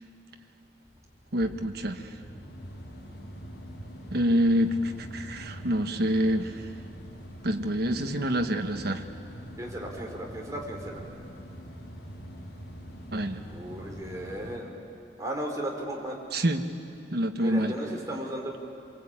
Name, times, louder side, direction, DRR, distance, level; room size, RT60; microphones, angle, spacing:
sound 1, 0.8-14.6, equal, 65° left, 3.8 m, -44 dB
voice 1, 1.3-2.1 4.1-6.6 7.4-9.0 13.1-13.4 16.3-16.6 17.1-17.7, equal, 65° right, 5 dB, 1.4 m, -26 dB
voice 2, 9.6-11.0 13.5-14.7 15.2-16.2 17.4-18.6, right 1 dB, 20° right, -1 dB, 4.1 m, -35 dB
27.0 x 23.0 x 8.9 m, 2.7 s
head